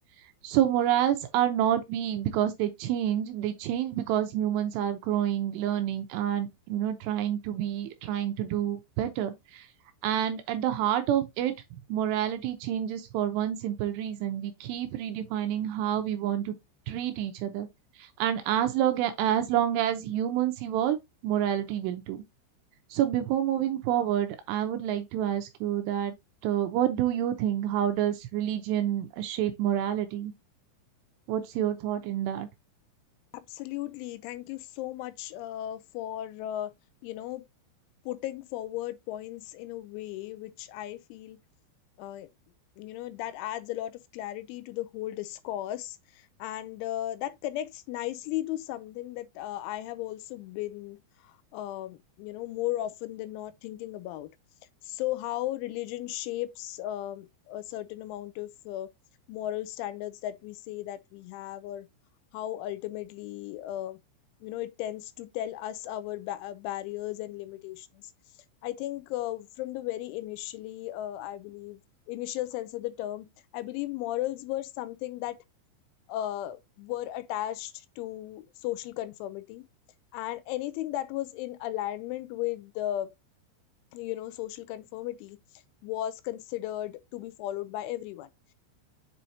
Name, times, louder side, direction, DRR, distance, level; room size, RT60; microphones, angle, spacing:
voice 1, 0.4-9.7 10.0-16.5 16.9-17.7 18.0-21.0 21.2-22.2 22.9-26.1 26.4-30.3 31.3-32.5, right 11 dB, 80° right, 2.5 m, -28 dB
voice 2, 33.3-36.7 37.0-37.5 38.1-41.4 42.0-42.3 42.8-54.3 54.8-58.9 59.3-61.9 62.3-64.0 64.4-68.0 68.6-71.8 72.1-75.4 76.1-79.7 80.1-83.1 83.9-85.4 85.8-88.3, left 14 dB, 85° left, 2.9 m, -35 dB
7.7 x 4.5 x 2.7 m
omnidirectional pair, 5.6 m